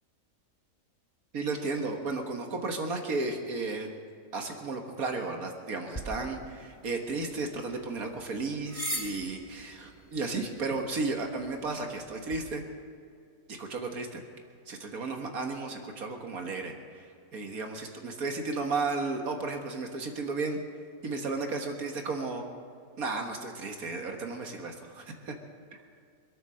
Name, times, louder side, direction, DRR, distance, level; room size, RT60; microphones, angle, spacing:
voice 1, 1.3-3.9 4.3-12.6 13.5-14.2 14.7-20.6 21.0-22.4 23.0-25.4, right 3 dB, 80° right, 3 dB, 1.9 m, -34 dB
sound 1, 5.9-12.4, equal, 25° left, 3.2 m, -43 dB
25.5 x 8.9 x 6.4 m, 2.3 s
omnidirectional pair, 1.5 m